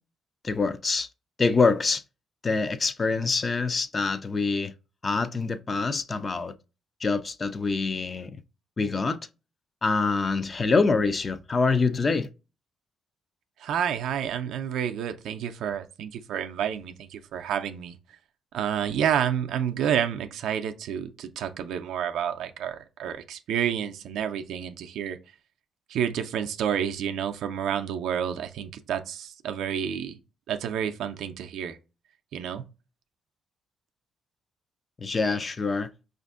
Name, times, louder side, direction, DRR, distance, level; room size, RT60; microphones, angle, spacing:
voice 1, 0.4-1.1 1.4-2.0 2.4-4.7 5.0-6.5 7.0-8.4 8.8-9.2 9.8-12.3 35.0-35.9, left 4 dB, 35° left, 0.3 m, -25 dB
voice 2, 13.6-18.2 18.5-25.2 25.9-30.2 30.5-31.8 32.3-32.7, right 9 dB, 80° right, 0.4 m, -29 dB
5.1 x 2.5 x 2.4 m
cardioid pair, 90°, 0 cm